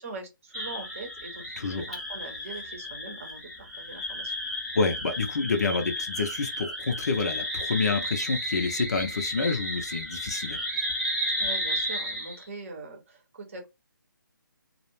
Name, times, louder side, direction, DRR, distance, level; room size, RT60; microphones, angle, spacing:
voice 1, 0.0-4.3 11.4-13.7, right 3 dB, 40° right, 0.8 m, -42 dB
sound 1, 0.5-12.4, equal, ahead, 0.5 m, -33 dB
voice 2, 4.7-10.6, left 4 dB, 50° left, 0.5 m, -28 dB
2.3 x 2.0 x 3.0 m
figure-of-eight pair, 150°, 11 cm